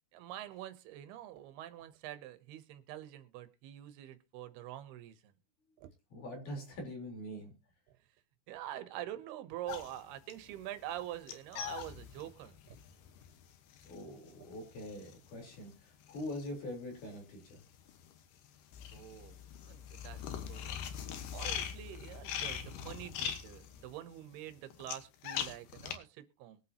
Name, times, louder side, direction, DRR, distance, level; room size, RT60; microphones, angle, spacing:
voice 1, 0.1-5.3 5.8-5.9 8.5-12.8 18.9-19.4 19.6-20.8 21.3-26.6, right 13 dB, 80° right, 2.9 m, -46 dB
voice 2, 6.1-7.6 13.8-17.6, left 1 dB, 55° left, 5.3 m, -43 dB
sound 1, 9.7-17.2 17.4-26.0, left 9 dB, 75° left, 3.2 m, -42 dB
22.0 x 8.4 x 2.9 m
omnidirectional pair, 4.6 m